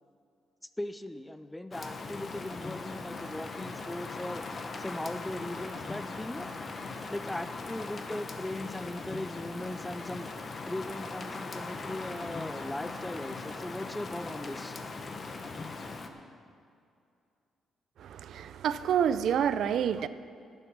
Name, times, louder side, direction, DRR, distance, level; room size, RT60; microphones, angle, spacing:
voice 1, 0.8-6.5 7.1-10.3 10.7-14.8, left 1 dB, 10° left, 12 dB, 0.5 m, -39 dB
Rain, 1.7-16.1, left 3 dB, 35° left, 1.0 m, -40 dB
voice 2, 18.0-20.1, right 8 dB, 70° right, 13 dB, 0.4 m, -28 dB
13.5 x 9.1 x 6.0 m, 2.5 s
cardioid pair, 120°, 0 cm